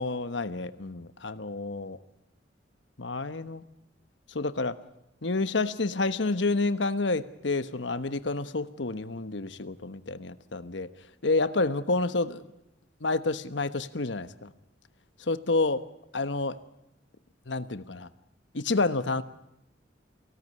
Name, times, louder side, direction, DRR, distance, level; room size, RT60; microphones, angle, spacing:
voice 1, 0.0-2.0 3.0-3.6 4.3-4.8 5.2-10.9 11.2-12.4 13.0-14.5 15.3-15.8 16.1-16.6 17.5-18.1 18.5-19.2, left 3 dB, 75° left, 12 dB, 1.2 m, -29 dB
24.5 x 17.0 x 9.6 m, 0.88 s
head